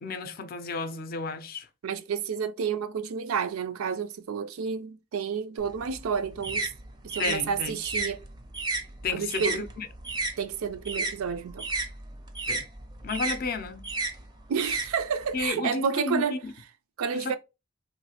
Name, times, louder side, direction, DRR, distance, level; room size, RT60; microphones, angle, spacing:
voice 1, 0.0-1.7 7.2-7.8 9.0-9.9 12.5-12.6 13.0-13.9 15.3-16.5 17.1-17.4, left 4 dB, 45° left, 0.4 m, -32 dB
voice 2, 1.8-6.7 7.1-8.2 9.1-9.6 10.4-11.7 14.5-16.4 17.0-17.4, right 6 dB, 90° right, 0.4 m, -30 dB
sound 1, 5.6-10.4 10.7-15.5, right 3 dB, 20° right, 0.4 m, -33 dB
3.1 x 2.4 x 2.8 m
head